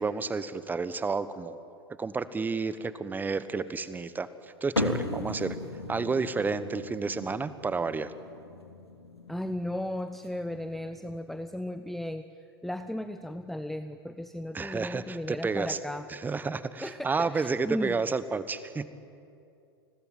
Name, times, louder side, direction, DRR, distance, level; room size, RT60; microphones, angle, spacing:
voice 1, 0.0-1.6 2.0-5.6 5.9-8.1 14.5-15.8 16.1-18.9, right 4 dB, 15° right, 15 dB, 1.3 m, -31 dB
sound 1, 4.8-11.5, left 2 dB, 90° left, 2.2 m, -37 dB
voice 2, 9.3-12.3 12.6-16.1 16.8-17.9, left 1 dB, ahead, 10 dB, 0.8 m, -35 dB
29.0 x 20.5 x 9.0 m, 2.6 s
figure-of-eight pair, 90°, 13 cm